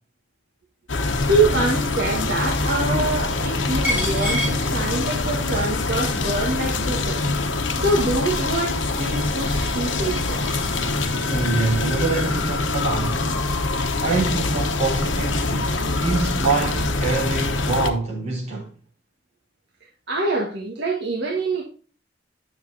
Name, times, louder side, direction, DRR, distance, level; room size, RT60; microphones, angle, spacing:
sound 1, 0.9-17.9, left 3 dB, 85° left, 1.0 m, -24 dB
voice 1, 1.3-7.2 7.8-10.4 20.1-21.6, right 2 dB, 65° right, 1.7 m, -25 dB
Coin (dropping), 3.8-5.3 5.7-12.3, left 1 dB, 10° right, 3.6 m, -34 dB
voice 2, 11.3-13.3 14.0-18.7, right 3 dB, 35° right, 4.1 m, -25 dB
9.9 x 7.1 x 2.7 m
head